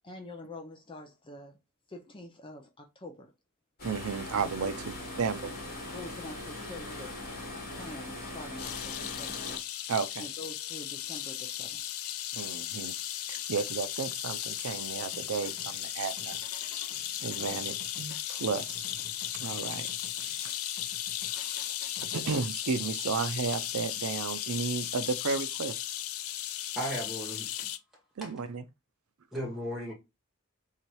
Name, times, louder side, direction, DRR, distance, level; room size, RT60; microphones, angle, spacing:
voice 1, 0.0-1.6 1.9-3.3 4.6-4.7 5.9-7.2 7.7-9.5 10.2-11.9, left 2 dB, 25° left, 0.6 m, -45 dB
sound 1, 3.8-9.6, left 1 dB, 45° left, 2.0 m, -40 dB
voice 2, 3.8-5.5 9.9-10.3 12.3-12.9 13.3-16.4 17.2-18.8 19.3-19.9 20.4-20.6 21.3-25.8 28.2-28.7, right 5 dB, 85° right, 0.5 m, -33 dB
sound 2, 8.6-27.8, left 12 dB, 85° left, 0.5 m, -36 dB
sound 3, 15.1-22.2, left 3 dB, 65° left, 1.5 m, -49 dB
voice 3, 26.8-27.7 28.2-28.3 29.3-29.9, equal, ahead, 2.0 m, -35 dB
3.9 x 2.9 x 4.6 m
head